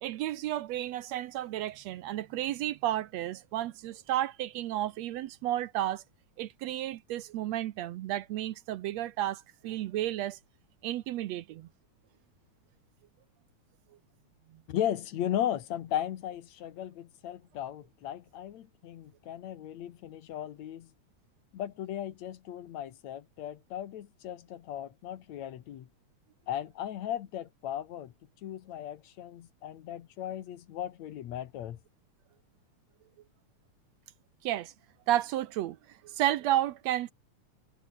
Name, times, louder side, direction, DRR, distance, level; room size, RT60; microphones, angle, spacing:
voice 1, 0.0-6.0 6.4-10.4 10.8-11.7 34.4-34.7 35.1-35.8 36.0-37.1, right 13 dB, 70° right, 1.9 m, -32 dB
voice 2, 14.7-20.9 21.5-25.9 26.5-28.1 28.4-31.8, left 11 dB, 70° left, 2.5 m, -36 dB
omnidirectional pair, 3.3 m